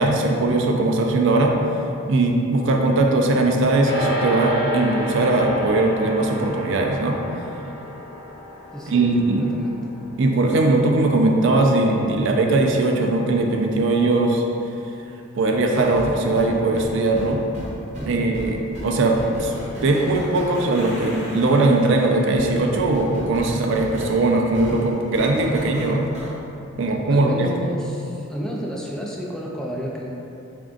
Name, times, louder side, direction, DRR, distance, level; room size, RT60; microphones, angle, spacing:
voice 1, 0.0-1.6 2.1-7.2 8.9-9.5 10.2-14.4 15.4-17.4 18.1-19.5 19.8-26.0 26.8-27.5, right 2 dB, 60° right, 2 dB, 0.4 m, -20 dB
sound 1, 3.8-13.3, equal, 60° left, 0.9 m, -31 dB
voice 2, 8.7-9.8 18.0-18.3 27.1-30.1, equal, 5° left, -3 dB, 0.3 m, -31 dB
sound 2, 15.7-26.3, equal, 35° right, 0.8 m, -36 dB
3.7 x 3.5 x 2.4 m, 2.8 s
head